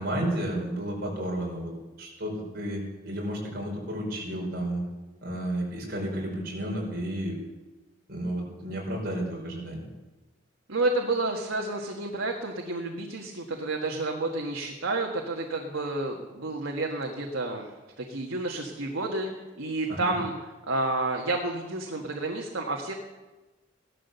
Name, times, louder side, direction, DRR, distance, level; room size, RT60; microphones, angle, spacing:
voice 1, 0.0-1.7 2.0-4.8 5.2-7.4 8.1-9.8 19.9-20.1, right 1 dB, 50° right, -2 dB, 4.9 m, -32 dB
voice 2, 10.7-17.7 18.0-19.3 19.6-20.3 20.7-22.9, right 2 dB, 90° right, 1 dB, 1.6 m, -30 dB
16.0 x 12.5 x 6.8 m, 1.2 s
head